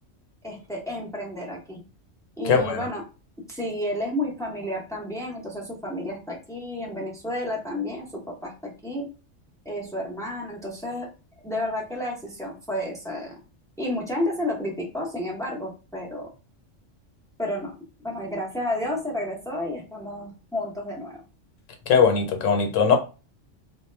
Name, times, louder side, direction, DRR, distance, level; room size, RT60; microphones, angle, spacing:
voice 1, 0.4-1.8 2.4-3.0 3.5-8.1 8.4-9.1 9.6-11.1 11.4-13.3 13.8-16.3 17.4-17.7 18.0-21.2, left 1 dB, 5° left, 0.4 m, -31 dB
voice 2, 2.5-2.8 21.9-23.0, left 6 dB, 80° left, 1.0 m, -20 dB
2.2 x 2.0 x 3.1 m
omnidirectional pair, 1.3 m